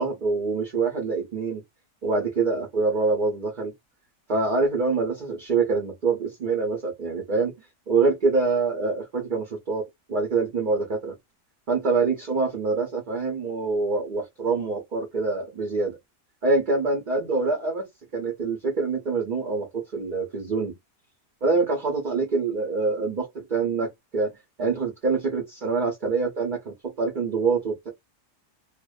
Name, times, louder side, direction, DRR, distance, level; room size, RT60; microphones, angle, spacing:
voice 1, 0.0-1.6 2.0-3.7 4.3-7.5 7.9-11.1 11.7-16.0 16.4-17.9 18.1-20.7 21.4-24.3 24.6-27.9, right 4 dB, 50° right, 0.6 m, -25 dB
2.5 x 2.1 x 2.3 m
omnidirectional pair, 1.7 m